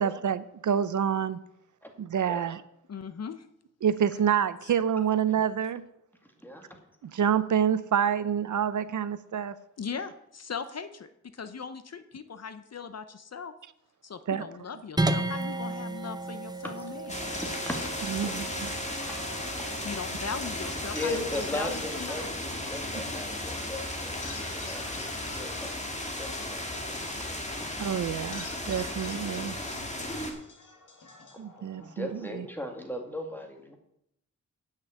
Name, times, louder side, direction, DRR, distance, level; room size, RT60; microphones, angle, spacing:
voice 1, 0.0-1.4 2.0-2.6 3.8-5.8 7.0-9.6 14.3-14.4 18.1-18.7 27.8-29.6 31.4-32.5, right 8 dB, 70° right, 14 dB, 0.6 m, -27 dB
voice 2, 2.9-3.5 4.6-4.7 9.8-13.5 14.0-17.1 19.8-22.3, left 6 dB, 55° left, 11 dB, 0.7 m, -39 dB
sound 1, 15.0-25.5, right 2 dB, 15° right, 0.6 m, -36 dB
sound 2, 17.1-30.3, left 1 dB, 20° left, 1.8 m, -35 dB
sound 3, 17.3-32.4, left 3 dB, 75° left, 1.9 m, -48 dB
voice 3, 17.4-18.4 18.7-19.2 19.6-19.7 20.8-22.3 22.7-25.1 25.3-25.7 26.2-27.8 31.3-33.8, left 1 dB, 5° left, 3 dB, 1.9 m, -38 dB
8.3 x 6.3 x 8.3 m, 0.79 s
wide cardioid pair, 105°, 31 cm